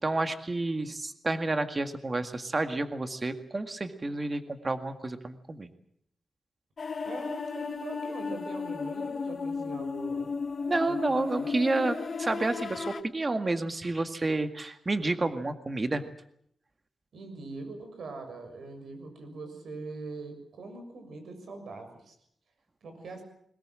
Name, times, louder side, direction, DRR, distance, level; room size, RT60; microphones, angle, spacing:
voice 1, 0.0-5.7 10.7-16.0, right 2 dB, 30° right, 8 dB, 1.9 m, -30 dB
sound 1, 6.8-13.0, left 5 dB, 50° left, 1.5 m, -34 dB
voice 2, 7.0-10.3 10.8-11.5 17.1-22.1 22.8-23.2, right 3 dB, 75° right, 7 dB, 6.6 m, -42 dB
22.0 x 20.0 x 7.7 m, 0.69 s
wide cardioid pair, 105°, 0 cm